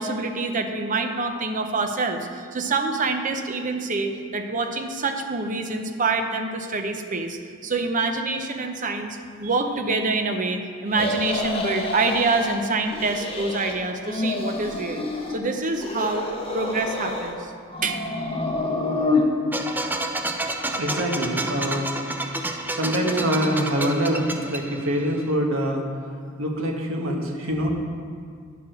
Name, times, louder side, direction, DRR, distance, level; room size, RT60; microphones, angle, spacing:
voice 1, 0.0-15.1 15.3-16.3 16.5-17.5 17.8-18.0, right 3 dB, 40° right, 5 dB, 0.8 m, -26 dB
sound 1, 10.9-12.6 12.9-13.7 14.0-15.4 15.7-17.4 17.7-19.2, left 2 dB, 30° left, 1.0 m, -28 dB
sound 2, 19.5-25.2, right 2 dB, 10° right, 0.5 m, -30 dB
voice 2, 20.8-21.9 22.5-25.8 26.4-27.7, equal, 80° right, 0 dB, 1.4 m, -25 dB
9.8 x 4.8 x 6.4 m, 2.1 s
head